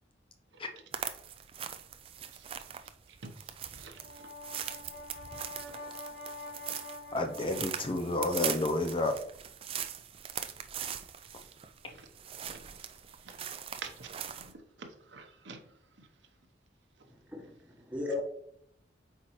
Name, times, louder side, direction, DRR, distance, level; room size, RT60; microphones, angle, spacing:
voice 1, 0.5-0.8 2.3-2.6 3.1-4.3 11.4-11.5 11.8-12.1 12.5-13.4 13.8-16.1, right 4 dB, 80° right, 5 dB, 0.9 m, -50 dB
sound 1, 0.9-14.5, right 9 dB, 30° right, 0.3 m, -41 dB
Brass instrument, 3.8-8.1, left 2 dB, 65° left, 2.5 m, -46 dB
voice 2, 7.1-9.1, left 2 dB, 30° left, 5 dB, 0.5 m, -30 dB
voice 3, 17.1-18.2, left 3 dB, 10° right, 0 dB, 1.1 m, -37 dB
8.0 x 4.4 x 3.1 m, 0.70 s
head